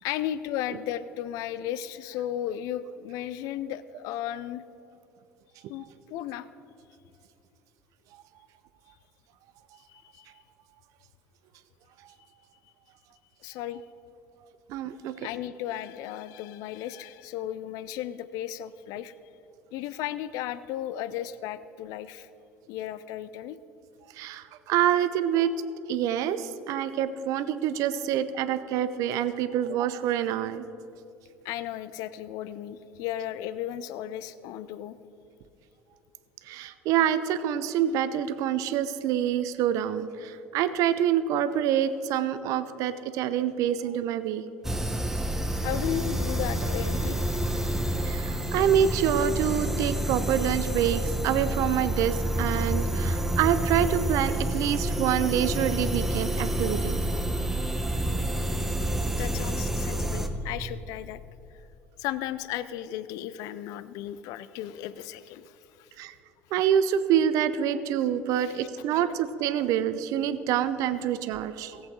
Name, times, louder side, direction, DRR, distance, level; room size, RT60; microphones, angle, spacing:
voice 1, 0.0-4.6 5.7-6.5 9.9-10.3 13.4-13.8 15.2-19.1 19.7-22.3 22.7-23.6 31.4-35.0 45.6-47.4 58.8-58.9 59.2-61.2 62.0-65.9 68.4-68.6 68.9-69.0, left 12 dB, 60° left, 15 dB, 0.4 m, -35 dB
voice 2, 14.7-15.1 24.2-25.5 25.9-30.6 36.5-44.4 48.0-57.0 66.0-66.1 66.5-71.8, right 9 dB, 60° right, 13 dB, 0.6 m, -26 dB
sound 1, 44.6-60.3, right 1 dB, 5° right, 1.1 m, -28 dB
17.5 x 8.0 x 3.9 m, 2.7 s
hypercardioid pair, 60°, 7 cm